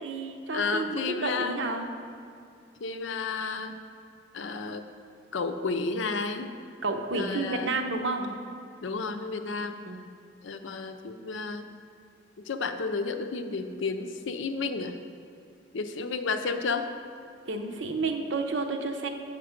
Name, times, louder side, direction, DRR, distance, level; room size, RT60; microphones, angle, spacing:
voice 1, 0.0-1.9 6.8-8.4 9.9-10.0 17.5-19.1, right 3 dB, 75° right, 4 dB, 0.8 m, -30 dB
voice 2, 0.5-1.6 2.8-3.7 4.3-4.8 5.3-6.5 7.1-7.8 8.8-9.8 10.4-11.7 12.4-15.0 15.7-16.9, left 4 dB, 80° left, 8 dB, 0.6 m, -32 dB
7.9 x 5.9 x 5.1 m, 2.5 s
head